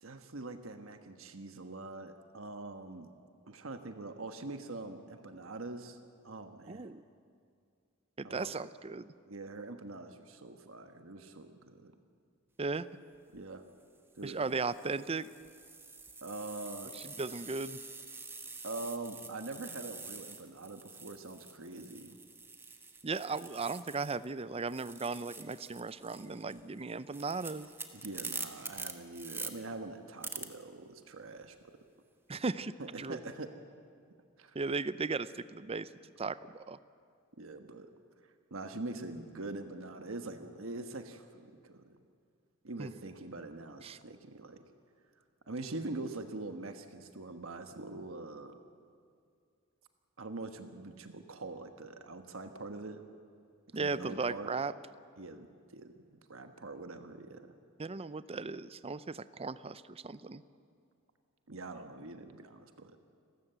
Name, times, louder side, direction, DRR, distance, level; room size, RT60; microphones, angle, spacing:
voice 1, 0.0-3.1 3.5-6.0 6.2-6.9 8.2-8.5 9.3-11.9 13.3-13.6 14.2-14.5 16.2-16.9 18.6-22.2 27.9-31.5 32.8-33.5 34.4-34.6 37.4-37.9 38.5-41.9 42.6-44.6 45.5-48.5 50.2-53.0 53.7-54.5 55.2-55.5 55.7-57.5 61.5-63.0, right 2 dB, 70° right, 7 dB, 1.3 m, -44 dB
voice 2, 6.7-7.0 8.2-9.1 12.6-12.9 14.2-15.3 16.9-17.8 23.0-27.7 32.3-32.7 33.0-33.2 34.5-35.9 36.2-36.4 36.7-36.8 42.8-42.9 43.8-44.0 53.7-54.7 57.8-60.4, right 4 dB, 30° right, 15 dB, 0.6 m, -36 dB
sound 1, 13.2-13.4 14.2-24.3 24.6-29.5 30.2-30.5, right 4 dB, 10° right, 1.3 m, -46 dB
29.5 x 13.5 x 8.1 m, 2.3 s
head